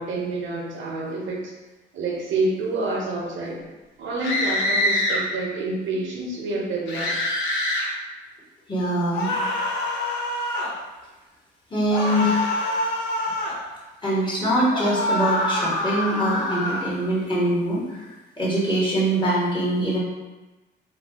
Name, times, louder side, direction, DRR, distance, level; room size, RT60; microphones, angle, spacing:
voice 1, 0.0-1.5 1.9-3.6 4.0-7.1, right 2 dB, 75° right, -1 dB, 0.7 m, -28 dB
sound 1, 4.2-5.2 6.9-7.9 9.1-10.7 11.9-13.6 14.7-16.9, left 1 dB, 70° left, 0.6 m, -25 dB
voice 2, 8.7-9.3 11.7-12.6 14.0-18.1 18.4-20.0, right 1 dB, 25° left, -6 dB, 1.2 m, -23 dB
2.5 x 2.2 x 3.4 m, 1.2 s
cardioid pair, 90°, 20 cm